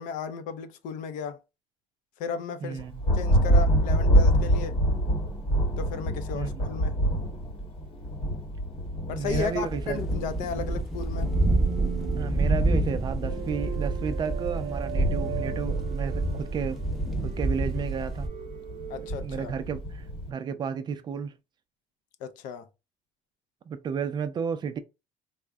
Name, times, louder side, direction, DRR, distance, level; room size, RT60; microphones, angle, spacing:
voice 1, 0.0-1.4 2.2-2.8 3.1-4.8 5.8-6.9 9.1-11.3 18.9-19.5 22.2-22.7, left 6 dB, 70° left, 0.5 m, -35 dB
voice 2, 2.6-3.0 6.3-6.7 9.1-10.0 12.2-16.8 17.2-18.3 19.0-21.3 23.7-24.8, right 6 dB, 30° right, 0.4 m, -33 dB
Thunder, 2.8-20.3, equal, 40° left, 0.9 m, -28 dB
sound 1, 9.2-18.3, right 2 dB, ahead, 0.7 m, -29 dB
sound 2, 11.2-20.2, right 9 dB, 60° right, 0.8 m, -40 dB
3.6 x 2.1 x 3.4 m
cardioid pair, 150°, 14 cm